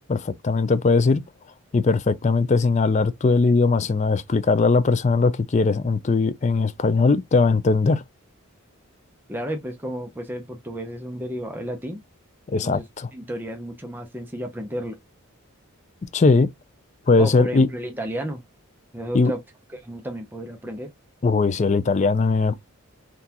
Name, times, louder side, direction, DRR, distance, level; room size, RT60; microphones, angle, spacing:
voice 1, 0.1-1.2 1.7-8.0 12.5-13.1 16.1-16.5 17.1-17.7 19.1-19.3 21.2-22.6, left 4 dB, 30° left, 0.4 m, -20 dB
voice 2, 9.3-12.0 12.6-12.8 13.1-15.0 17.2-18.4 18.9-19.4 19.7-20.9, equal, 10° right, 0.6 m, -32 dB
3.7 x 2.4 x 2.8 m
head